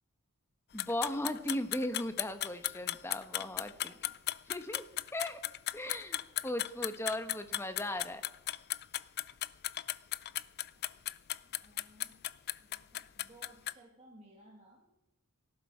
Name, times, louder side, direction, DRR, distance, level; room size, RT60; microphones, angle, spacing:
voice 1, 0.7-3.9 4.5-4.8 5.1-5.4 5.7-8.2, left 1 dB, 10° left, 8 dB, 1.0 m, -37 dB
sound 1, 0.8-13.7, left 14 dB, 45° left, 0.4 m, -36 dB
voice 2, 3.4-4.2 6.0-6.6 10.8-11.1 11.4-12.3 12.6-14.9, right 1 dB, 30° right, -2 dB, 2.1 m, -61 dB
17.5 x 12.0 x 4.8 m, 0.90 s
head